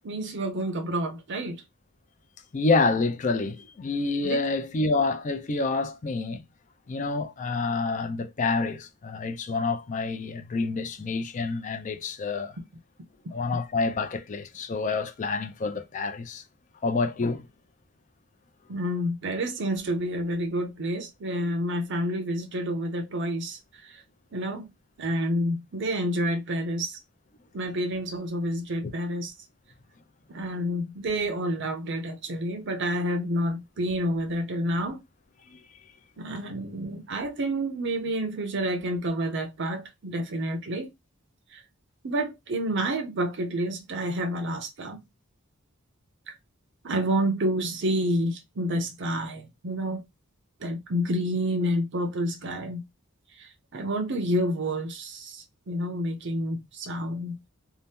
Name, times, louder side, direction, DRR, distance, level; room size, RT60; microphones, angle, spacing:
voice 1, 0.0-1.6 4.2-4.4 18.7-24.0 24.3-24.7 25.0-27.0 27.5-29.3 30.3-35.0 36.2-40.9 41.5-41.6 42.0-45.0 46.3-46.4 46.8-50.0 50.6-52.8 53.4-57.4, equal, 55° right, 0.6 m, -29 dB
voice 2, 2.5-6.4 6.9-12.5 13.3-16.4 16.8-17.5 28.8-28.9 35.5-35.6, left 3 dB, 35° left, 0.4 m, -28 dB
2.8 x 2.0 x 3.3 m
head